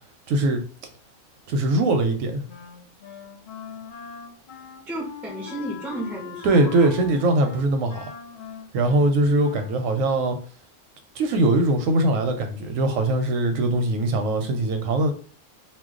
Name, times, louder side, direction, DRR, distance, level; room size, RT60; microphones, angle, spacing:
voice 1, 0.3-0.6 1.5-2.5 6.4-8.0 8.7-10.4 11.2-15.1, right 2 dB, 90° right, 1.0 m, -21 dB
Wind instrument woodwind instrument, 2.5-10.0, left 6 dB, 55° left, 0.6 m, -41 dB
voice 2, 4.9-7.4, right 1 dB, ahead, 0.3 m, -34 dB
2.3 x 2.2 x 3.6 m
omnidirectional pair, 1.3 m